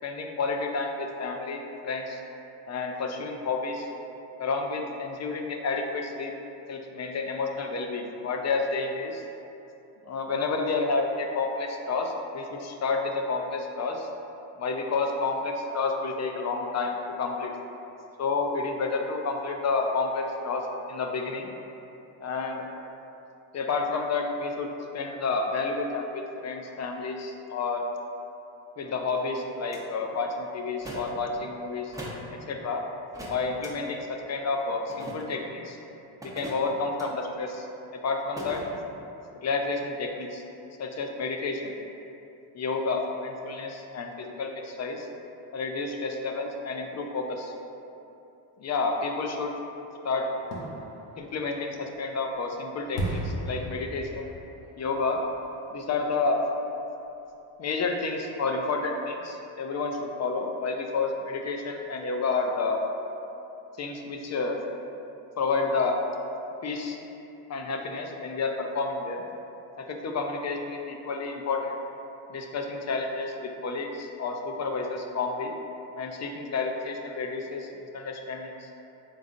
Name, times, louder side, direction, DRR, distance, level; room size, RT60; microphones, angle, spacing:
voice 1, 0.0-2.2 2.7-3.9 4.4-6.3 6.7-9.2 10.1-14.1 14.6-17.5 18.2-20.6 20.9-21.5 22.2-22.6 23.5-24.7 24.9-27.8 28.8-31.9 32.5-32.8 33.3-35.8 36.2-37.7 38.0-38.6 39.4-40.4 40.8-41.7 42.5-45.1 45.5-47.5 48.6-49.5 50.0-50.3 51.2-54.2 54.8-55.2 55.7-56.4 57.6-62.8 63.8-64.6 65.4-66.0 66.6-67.0 67.5-69.2 69.8-71.8 72.3-75.5 76.0-77.7 77.9-78.7, left 4 dB, 35° left, 3 dB, 0.4 m, -30 dB
sound 1, 29.7-29.8 30.8-31.2 31.9-32.3 33.1-33.7 34.9-35.4 36.2-37.1 38.4-38.7, equal, 5° right, 0.8 m, -39 dB
Fireworks, 50.4-56.2 56.6-56.7, equal, 85° left, 0.8 m, -37 dB
3.8 x 3.6 x 2.5 m, 2.9 s
supercardioid pair, 55°, 49 cm